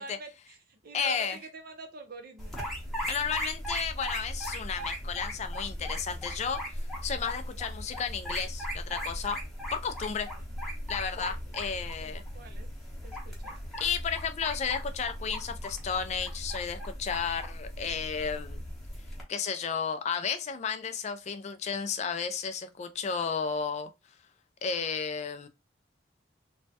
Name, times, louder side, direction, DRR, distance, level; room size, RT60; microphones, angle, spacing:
voice 1, 0.0-2.6 10.3-10.5 11.2-11.5 12.0-12.7 13.0-13.6, right 3 dB, 50° right, 0.6 m, -47 dB
voice 2, 0.9-1.4 3.1-6.6 7.0-9.4 9.7-10.3 10.9-12.2 13.8-18.6 19.3-23.9 24.6-25.5, left 6 dB, 35° left, 0.3 m, -33 dB
sound 1, 2.4-19.2, equal, ahead, 0.8 m, -38 dB
3.1 x 2.2 x 2.7 m
head